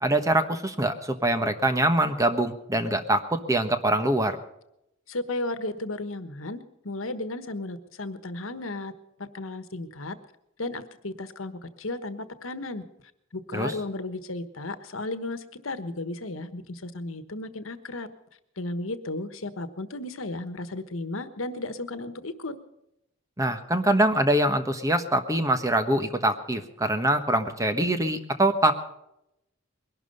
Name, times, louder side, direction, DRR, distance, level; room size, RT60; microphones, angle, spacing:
voice 1, 0.0-3.2 3.5-4.4 13.5-13.7 23.4-28.7, right 1 dB, 15° right, 8 dB, 1.2 m, -24 dB
voice 2, 5.1-8.9 9.2-10.1 10.6-12.8 13.3-18.1 18.6-22.5, left 2 dB, 85° left, 11 dB, 1.3 m, -34 dB
21.5 x 12.0 x 5.5 m, 0.83 s
head